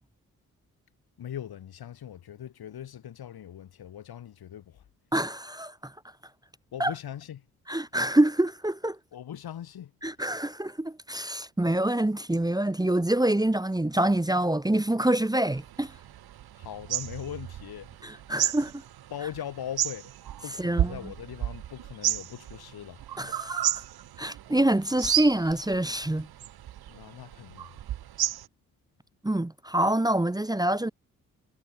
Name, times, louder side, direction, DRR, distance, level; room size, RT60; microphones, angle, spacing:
voice 1, 1.2-4.8 6.7-7.4 9.1-9.9 16.6-17.9 19.1-20.1 20.4-23.0 26.9-27.7, left 10 dB, 75° left, 4.4 m, -40 dB
voice 2, 5.1-5.9 6.8-6.9 7.7-9.0 10.0-15.9 18.0-18.7 20.6-21.0 23.2-23.7 24.2-26.3 29.2-30.9, right 1 dB, 10° right, 1.3 m, -26 dB
sound 1, 15.5-28.5, right 12 dB, 80° right, 1.7 m, -33 dB
supercardioid pair, 45°, 38 cm